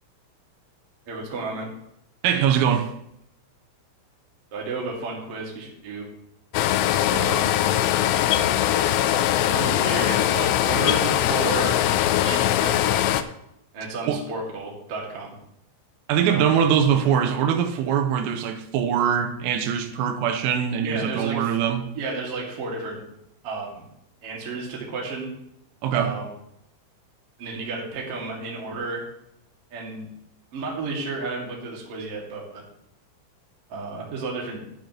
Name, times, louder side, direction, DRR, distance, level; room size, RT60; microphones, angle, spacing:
voice 1, 1.1-1.7 4.5-6.1 7.1-7.6 8.7-8.9 9.4-11.8 12.2-13.1 13.7-15.4 16.3-16.5 20.8-21.5 21.9-23.0 23.4-23.9 24.2-25.3 25.9-26.3 27.4-29.0 29.7-30.1 30.5-32.6 33.7-34.7, right 3 dB, 50° right, 1.8 m, -32 dB
voice 2, 2.2-2.9 14.1-14.2 16.1-21.9 25.8-26.1, right 8 dB, 90° right, 3.5 m, -22 dB
sound 1, 6.5-13.2, left 12 dB, 85° left, 2.8 m, -21 dB
11.5 x 9.9 x 3.0 m
omnidirectional pair, 5.8 m